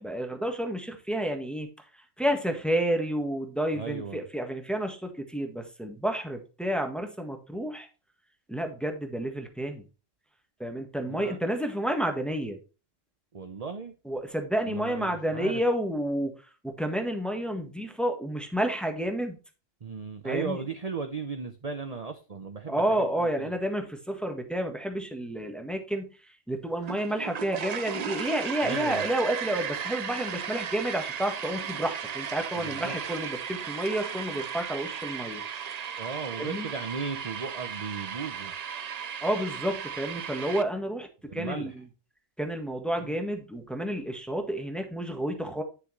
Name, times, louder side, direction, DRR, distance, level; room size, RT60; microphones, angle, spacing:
voice 1, 0.0-1.7 2.2-7.9 8.5-9.8 10.6-12.6 14.0-16.3 16.6-19.4 20.2-20.6 22.7-26.2 26.5-35.4 36.4-36.7 39.2-41.8 42.4-45.6, right 1 dB, ahead, 4 dB, 1.4 m, -30 dB
voice 2, 3.7-4.2 11.0-11.4 13.3-13.9 14.7-15.6 19.8-23.5 28.6-29.0 32.6-33.0 36.0-38.5 41.3-41.7 43.0-43.1, right 5 dB, 35° right, 7 dB, 0.8 m, -36 dB
sound 1, 26.8-40.6, right 8 dB, 55° right, 0.4 m, -36 dB
9.6 x 6.8 x 3.1 m, 0.33 s
omnidirectional pair, 1.3 m